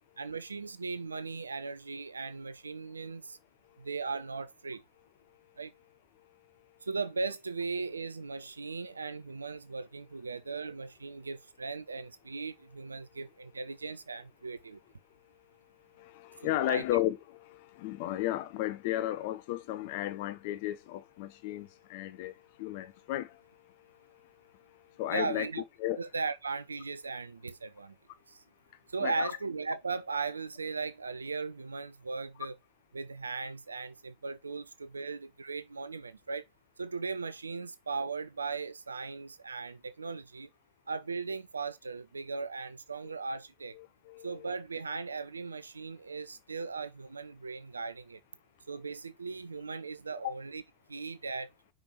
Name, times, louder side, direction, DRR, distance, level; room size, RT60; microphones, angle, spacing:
voice 1, 0.2-3.4 3.8-4.8 5.6-5.7 6.8-14.8 16.6-16.8 25.1-25.6 26.0-28.0 28.3-28.4 28.9-32.6 32.9-36.5 36.8-40.5 40.9-43.8 44.2-48.2 48.7-50.6 50.9-51.5, right 4 dB, 75° right, 0.3 m, -38 dB
voice 2, 16.0-23.4 25.0-25.5 25.8-26.0 29.0-29.3 43.8-44.5 50.2-50.3, left 14 dB, 50° left, 0.5 m, -34 dB
5.2 x 4.5 x 4.2 m
figure-of-eight pair, 90°, 0 cm